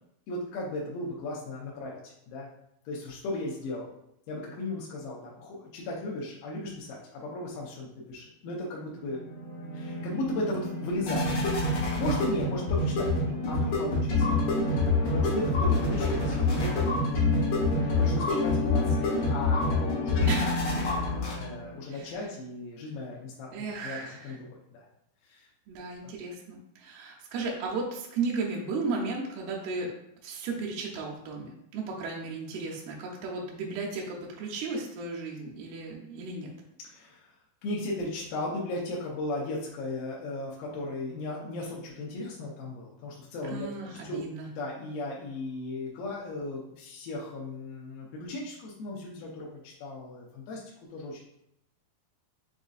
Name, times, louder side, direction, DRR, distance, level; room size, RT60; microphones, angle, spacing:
voice 1, 0.3-2.5 2.9-3.9 4.3-9.2 9.7-11.4 12.0-14.3 15.1-17.4 18.0-20.5 21.2-23.5 23.8-24.9 25.2-25.5 26.0-26.1 36.8-37.3 37.6-44.3 44.6-50.6 50.9-51.2, left 2 dB, 80° left, -4 dB, 2.2 m, -36 dB
sound 1, 8.9-21.8, left 2 dB, 65° left, 1.8 m, -27 dB
voice 2, 12.8-13.6 14.7-14.8 20.3-20.6 21.9-22.1 23.5-24.4 25.7-29.9 30.2-36.5 43.5-44.5, right 4 dB, 80° right, -3 dB, 2.6 m, -35 dB
6.2 x 2.6 x 2.4 m, 0.78 s
omnidirectional pair, 4.6 m